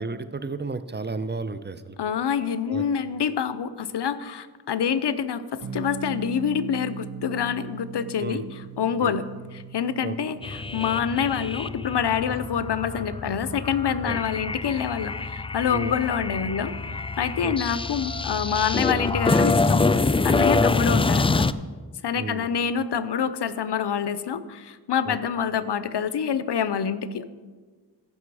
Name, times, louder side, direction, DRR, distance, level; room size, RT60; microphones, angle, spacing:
voice 1, 0.0-2.0 2.7-2.9 8.2-8.4 9.0-9.2 10.0-10.2 12.3-12.4 14.0-14.2 15.7-15.9 17.4-17.5 20.4-20.7 22.1-22.5 25.0-25.2, right 3 dB, 25° right, 12 dB, 0.6 m, -32 dB
voice 2, 2.0-8.4 8.8-9.2 9.5-16.7 17.2-19.8 20.2-21.5 22.0-27.3, left 7 dB, 75° left, 14 dB, 0.7 m, -26 dB
sound 1, 5.6-12.5, right 6 dB, 50° right, 0.9 m, -40 dB
sound 2, 10.4-21.5, left 3 dB, 15° left, 0.3 m, -25 dB
15.5 x 6.0 x 4.8 m, 1.4 s
cardioid pair, 50°, 41 cm